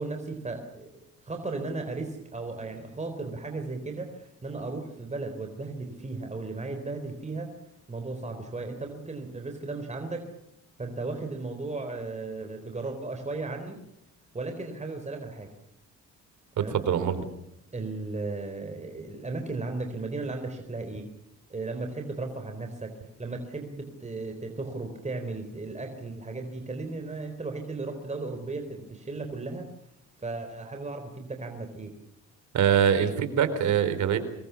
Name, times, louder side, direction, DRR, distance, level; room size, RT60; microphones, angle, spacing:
voice 1, 0.0-7.5 7.9-10.2 10.8-13.8 14.3-15.5 16.6-16.8 17.7-21.1 21.5-29.7 30.2-31.9, right 3 dB, 25° right, 5 dB, 4.2 m, -35 dB
voice 2, 16.7-17.2 32.5-34.2, right 8 dB, 75° right, 11 dB, 4.0 m, -23 dB
25.5 x 22.0 x 7.1 m, 0.82 s
cardioid pair, 90°, 30 cm